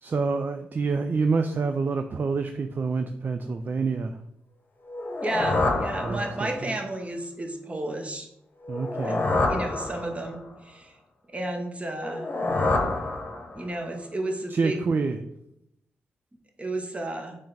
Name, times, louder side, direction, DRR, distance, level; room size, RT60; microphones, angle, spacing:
voice 1, 0.0-4.2 6.0-6.8 8.7-9.2 14.5-15.2, right 4 dB, 45° right, 7 dB, 0.3 m, -27 dB
sound 1, 4.9-6.7 8.6-10.5 12.0-13.8, left 2 dB, 40° left, 0.9 m, -27 dB
voice 2, 5.2-8.3 9.0-9.2 9.5-10.9 11.3-12.2 13.5-14.8 16.6-17.4, right 1 dB, 25° right, 3 dB, 1.0 m, -32 dB
3.7 x 3.3 x 4.0 m, 0.77 s
supercardioid pair, 45°, 5 cm